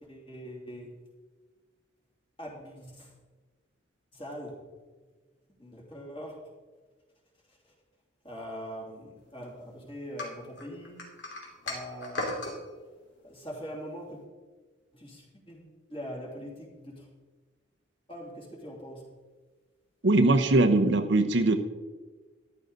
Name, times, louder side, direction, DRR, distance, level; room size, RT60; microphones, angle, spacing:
voice 1, 0.0-1.0 2.4-3.1 4.1-4.5 5.6-6.3 7.5-7.6 8.2-11.0 11.6-12.4 13.2-14.2 14.9-17.1 18.1-19.0, equal, 25° left, -3 dB, 3.0 m, -42 dB
sound 1, 10.2-12.6, left 2 dB, 60° left, 2.9 m, -36 dB
voice 2, 20.0-21.6, right 2 dB, 60° right, 7 dB, 0.8 m, -21 dB
14.0 x 10.5 x 4.0 m, 1.3 s
head